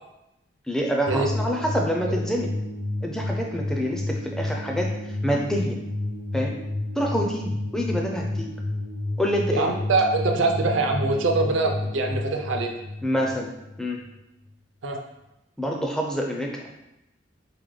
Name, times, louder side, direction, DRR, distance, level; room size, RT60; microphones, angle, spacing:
voice 1, 0.7-2.5 3.0-5.8 6.3-6.5 7.0-8.6 9.2-9.7 13.0-13.5 13.8-14.0 15.6-16.6, equal, 5° left, 0 dB, 0.4 m, -27 dB
sound 1, 1.1-14.2, left 2 dB, 50° left, 0.7 m, -30 dB
voice 2, 9.5-12.7 14.8-15.0, right 3 dB, 80° right, 3 dB, 0.5 m, -23 dB
4.8 x 2.2 x 3.2 m, 0.91 s
head